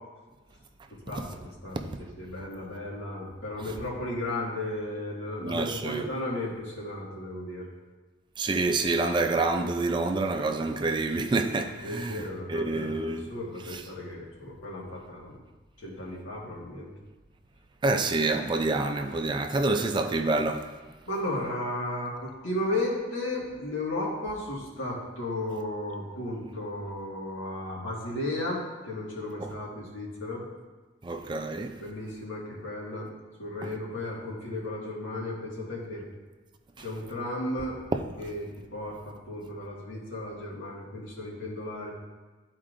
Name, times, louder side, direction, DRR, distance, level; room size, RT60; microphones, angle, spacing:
voice 1, 1.1-1.8 2.2-7.7 11.8-15.4 15.8-16.9 21.1-30.5 31.8-33.1 33.4-36.0 36.8-37.8 38.2-41.9, left 1 dB, 90° left, 1.8 m, -34 dB
voice 2, 5.4-6.1 8.4-12.2 12.5-13.3 13.7-13.8 17.8-20.7 29.4-29.5 31.0-31.8 33.6-33.7 37.9-38.0, right 3 dB, 25° right, 0.4 m, -27 dB
13.0 x 4.4 x 2.5 m
head